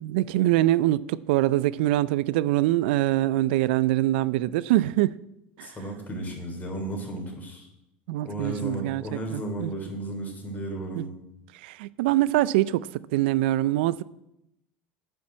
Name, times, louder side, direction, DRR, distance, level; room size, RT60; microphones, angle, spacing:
voice 1, 0.0-5.2 5.6-5.7 8.1-9.7 10.9-11.0 11.6-14.0, right 15 dB, 75° right, 0.4 m, -24 dB
voice 2, 5.6-7.7 8.2-11.1, right 1 dB, 30° left, 3.4 m, -34 dB
8.2 x 6.0 x 7.5 m
hypercardioid pair, 90°, 6 cm